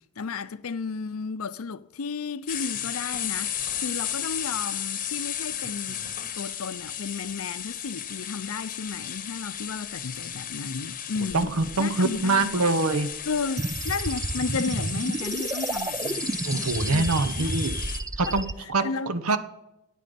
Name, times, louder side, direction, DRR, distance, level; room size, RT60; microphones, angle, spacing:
voice 1, 0.0-6.0 6.4-11.5 11.8-12.6 13.3-16.4 16.9-17.5 18.2-19.4, left 4 dB, 75° left, 0.6 m, -33 dB
sound 1, 2.5-18.0, left 10 dB, 40° left, 0.9 m, -34 dB
voice 2, 11.3-13.1 16.4-17.8 18.2-18.8 19.1-19.4, right 3 dB, 85° right, 0.8 m, -24 dB
sound 2, 13.6-18.5, right 3 dB, 15° right, 0.3 m, -31 dB
13.5 x 9.5 x 5.2 m
head